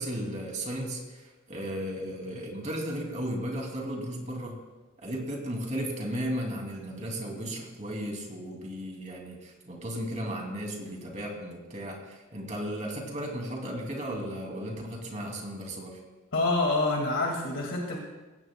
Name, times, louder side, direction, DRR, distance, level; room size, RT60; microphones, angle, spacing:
voice 1, 0.0-4.6 5.0-16.0, equal, 35° right, 0 dB, 2.6 m, -35 dB
voice 2, 16.3-18.0, left 2 dB, 70° left, -1 dB, 2.1 m, -27 dB
19.5 x 16.5 x 2.3 m, 1.2 s
head